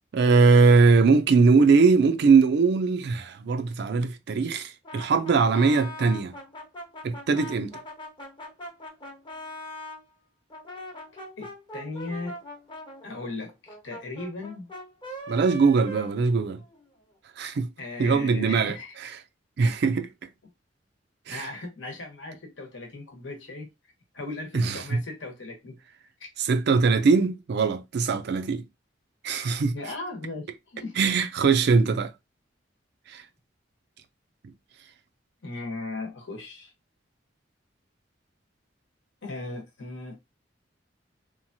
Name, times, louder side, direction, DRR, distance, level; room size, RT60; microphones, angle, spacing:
voice 1, 0.1-6.3 7.0-7.7 15.3-16.6 17.4-17.7 18.0-18.7 19.0-19.1 19.6-20.1 21.3-21.4 24.5-25.0 26.4-28.6 29.2-29.8 31.0-32.1 33.1-33.2, right 4 dB, 65° right, 0.4 m, -21 dB
Brass instrument, 4.8-10.0 10.5-16.8, left 1 dB, 25° left, 0.8 m, -41 dB
voice 2, 11.4-12.4 13.0-14.7 17.8-18.9 21.3-23.7 24.1-25.8 26.2-26.3 29.7-31.0 35.4-36.7 39.2-40.2, left 2 dB, 80° left, 1.0 m, -37 dB
3.0 x 2.3 x 2.6 m
head